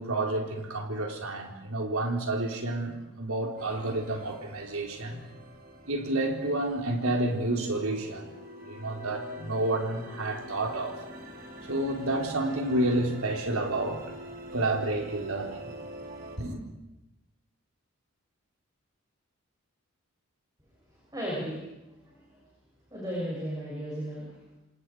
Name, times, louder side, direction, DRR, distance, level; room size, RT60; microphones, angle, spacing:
voice 1, 0.0-5.2 5.9-8.3 8.6-11.0 11.6-14.1 14.5-15.7 16.4-16.6, right 2 dB, 80° right, 2 dB, 4.1 m, -30 dB
sound 1, 3.6-16.4, equal, 40° right, 3.0 m, -45 dB
voice 2, 20.9-21.6 21.9-22.5 22.9-24.6, equal, 20° right, -6 dB, 7.6 m, -36 dB
28.5 x 27.0 x 5.0 m, 0.97 s
head